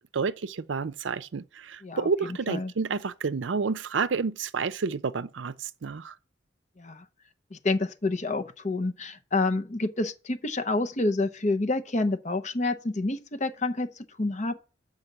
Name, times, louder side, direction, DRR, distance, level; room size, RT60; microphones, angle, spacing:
voice 1, 0.1-6.1, right 5 dB, 75° right, 0.5 m, -30 dB
voice 2, 1.8-2.7 6.8-7.0 7.5-13.9 14.2-14.6, left 2 dB, 40° left, 0.8 m, -28 dB
7.2 x 5.2 x 6.6 m
head